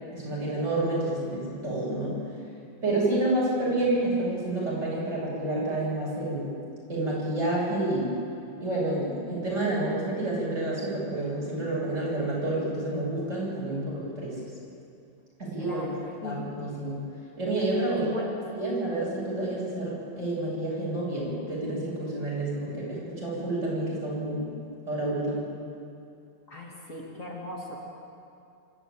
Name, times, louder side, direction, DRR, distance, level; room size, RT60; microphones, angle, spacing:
voice 1, 0.1-2.1 2.8-6.5 6.9-8.1 8.6-14.3 15.4-15.8 16.2-17.0 17.4-18.3 18.5-24.5 24.9-25.5, right 2 dB, 40° right, -6 dB, 8.3 m, -29 dB
voice 2, 15.6-16.4 18.1-18.2 26.5-27.8, left 1 dB, 45° left, -3 dB, 2.9 m, -39 dB
25.5 x 13.0 x 9.0 m, 2.6 s
omnidirectional pair, 2.0 m